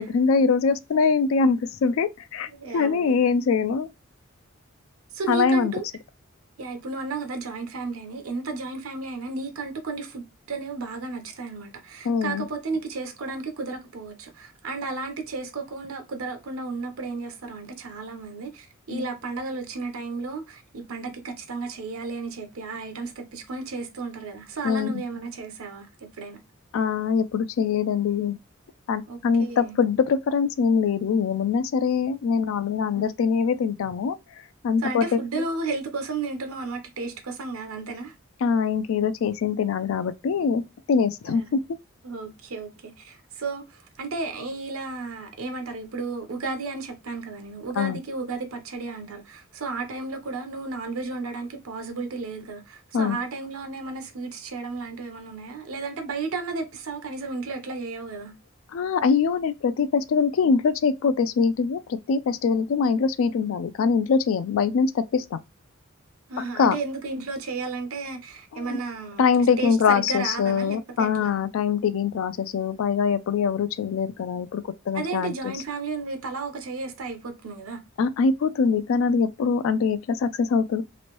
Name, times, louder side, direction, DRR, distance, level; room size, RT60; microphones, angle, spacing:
voice 1, 0.0-3.9 5.3-5.7 12.0-12.4 18.9-19.1 24.6-25.0 26.7-28.4 28.9-34.2 34.6-35.4 38.4-40.6 40.9-41.6 47.8-48.0 52.9-53.2 58.7-65.4 66.6-66.8 68.5-68.8 69.2-75.5 78.0-80.8, left 5 dB, 70° left, 0.3 m, -23 dB
voice 2, 2.5-3.3 5.1-5.8 6.6-25.9 26.2-26.4 29.1-29.8 32.9-33.1 34.8-38.1 41.3-41.6 42.0-58.3 66.3-69.2 69.6-71.4 74.9-77.8, right 3 dB, 85° right, 0.7 m, -33 dB
3.0 x 2.5 x 3.0 m
head